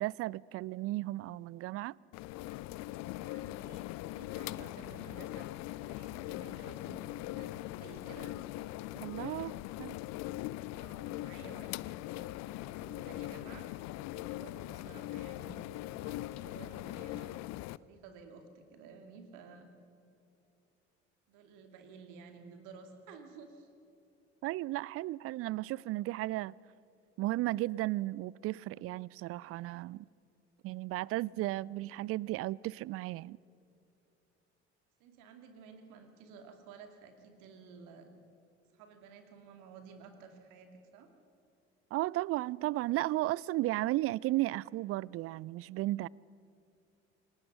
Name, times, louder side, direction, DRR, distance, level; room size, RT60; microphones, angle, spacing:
voice 1, 0.0-2.0 9.0-10.0 24.4-26.5 27.2-30.1 30.6-33.4 41.9-46.1, right 17 dB, 45° right, 0.4 m, -34 dB
sound 1, 2.1-17.8, left 17 dB, 50° left, 0.5 m, -41 dB
voice 2, 3.1-5.5 5.8-8.4 10.8-13.7 14.1-17.4 17.8-19.7 21.3-23.7 35.0-38.1 38.7-41.1, right 5 dB, 65° right, 2.6 m, -53 dB
27.5 x 18.0 x 6.2 m
figure-of-eight pair, 50°, 34 cm